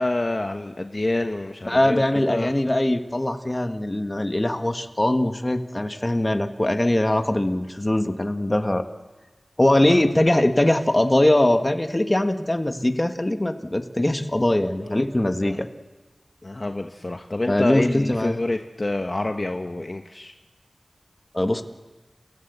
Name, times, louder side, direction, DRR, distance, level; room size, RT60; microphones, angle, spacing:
voice 1, 0.0-2.5 9.8-10.0 14.8-15.0 15.5-15.6 16.4-20.3, left 2 dB, 45° left, 5 dB, 1.1 m, -27 dB
voice 2, 1.7-8.8 9.6-15.7 17.5-18.4 21.3-21.6, left 1 dB, 30° left, 6 dB, 1.7 m, -21 dB
30.0 x 16.0 x 8.1 m, 1.3 s
wide cardioid pair, 50°, 0 cm